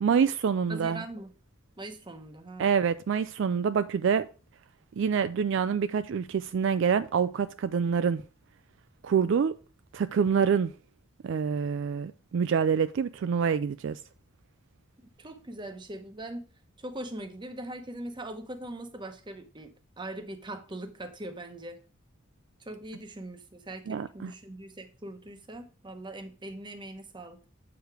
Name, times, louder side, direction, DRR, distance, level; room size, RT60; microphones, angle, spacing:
voice 1, 0.0-1.0 2.6-4.3 5.0-8.2 9.0-9.5 9.9-10.7 11.2-14.0 23.9-24.3, right 6 dB, 60° right, 0.3 m, -26 dB
voice 2, 0.7-1.3 1.8-2.7 15.0-16.5 16.8-21.8 22.6-27.4, right 1 dB, 25° right, 0.9 m, -41 dB
7.9 x 4.9 x 4.7 m
head